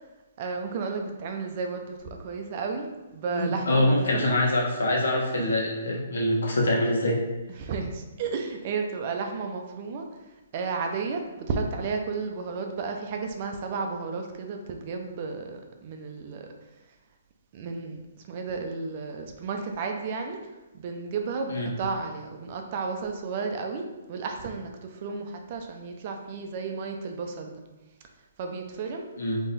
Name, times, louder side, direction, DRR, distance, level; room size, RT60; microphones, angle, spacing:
voice 1, 0.4-2.9 3.1-4.4 5.4-5.5 7.6-10.1 10.5-16.5 17.5-18.0 18.3-20.4 20.7-27.6 28.4-29.1, right 4 dB, 30° right, 3 dB, 0.4 m, -33 dB
voice 2, 3.3-7.2 21.5-21.7 29.2-29.4, left 1 dB, 85° left, -2 dB, 1.3 m, -24 dB
3.8 x 2.9 x 4.1 m, 1.1 s
hypercardioid pair, 175°, 0 cm